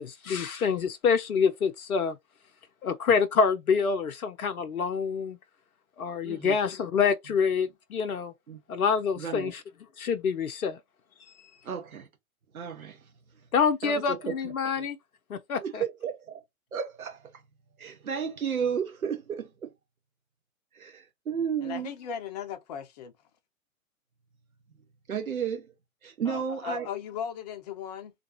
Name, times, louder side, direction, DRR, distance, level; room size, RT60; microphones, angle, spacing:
voice 1, 0.0-2.2 2.8-5.4 6.0-8.3 8.7-9.6 10.0-10.8 13.5-15.0 15.3-15.8, left 6 dB, 80° left, 0.6 m, -26 dB
voice 2, 6.2-6.6 8.5-8.6 9.2-9.5 11.6-12.1 12.5-13.1 13.8-14.4 14.7-14.8 15.6-16.4 16.7-17.4 17.8-19.7 20.7-21.9 25.1-25.7 26.0-26.9, right 7 dB, 80° right, 0.7 m, -33 dB
voice 3, 21.6-23.1 26.3-28.1, left 8 dB, 30° left, 0.5 m, -37 dB
3.3 x 2.3 x 2.8 m
figure-of-eight pair, 105°, 42 cm